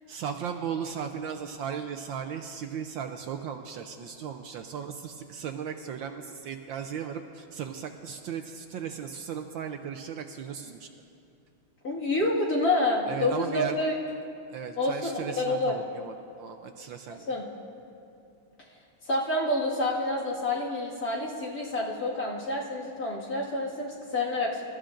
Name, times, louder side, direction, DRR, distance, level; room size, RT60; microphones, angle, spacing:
voice 1, 0.1-10.9 13.1-13.8 14.5-17.3, right 7 dB, 75° right, 6 dB, 1.2 m, -36 dB
voice 2, 11.8-13.9 14.8-15.7 17.3-17.4 19.1-24.6, left 2 dB, 45° left, -5 dB, 2.3 m, -28 dB
28.0 x 14.0 x 2.6 m, 2.7 s
omnidirectional pair, 2.4 m